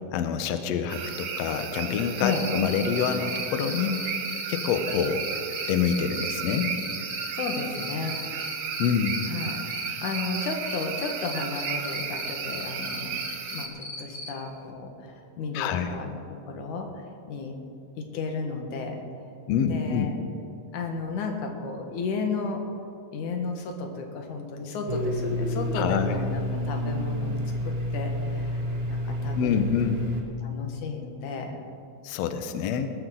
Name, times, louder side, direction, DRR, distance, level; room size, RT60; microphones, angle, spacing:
voice 1, 0.1-4.2 4.5-5.2 5.7-6.7 8.8-9.3 15.5-15.9 19.5-20.1 25.7-26.2 29.4-30.1 32.0-32.9, left 7 dB, 90° left, 8 dB, 1.4 m, -26 dB
sound 1, 0.9-13.7, right 7 dB, 75° right, 2.6 m, -34 dB
Cricket, 2.3-14.3, left 2 dB, 45° left, 1.1 m, -37 dB
voice 2, 7.3-8.2 9.3-9.6 10.0-13.2 13.5-16.2 16.5-17.6 18.0-19.0 19.6-20.1 20.7-22.6 23.1-27.4 27.6-28.6 28.9-29.9 30.4-31.6, left 4 dB, 65° left, 3 dB, 2.7 m, -33 dB
Domestic sounds home sounds, 24.9-30.2, equal, 50° right, 0.7 m, -29 dB
20.5 x 12.5 x 3.8 m, 2.6 s
omnidirectional pair, 4.1 m